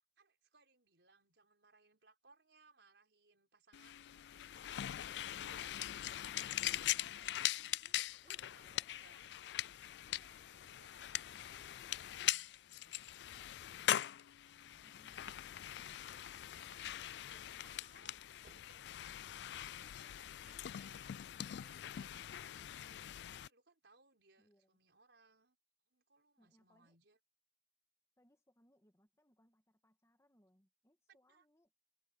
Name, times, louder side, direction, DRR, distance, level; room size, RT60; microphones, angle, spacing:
voice 1, 0.2-7.3 7.6-9.3 10.0-13.8 14.3-14.9 15.3-18.2 18.5-18.9 19.6-25.6 25.9-27.2 31.1-31.5, right 3 dB, 70° right, 5.4 m, -69 dB
sound 1, 3.7-23.5, left 12 dB, 65° left, 0.3 m, -42 dB
voice 2, 8.2-9.2 14.8-15.4 24.4-24.8 26.4-27.0 28.2-31.7, equal, 15° left, 2.1 m, -72 dB
sound 2, 15.2-16.9 17.4-19.6, right 1 dB, 45° right, 2.8 m, -67 dB
head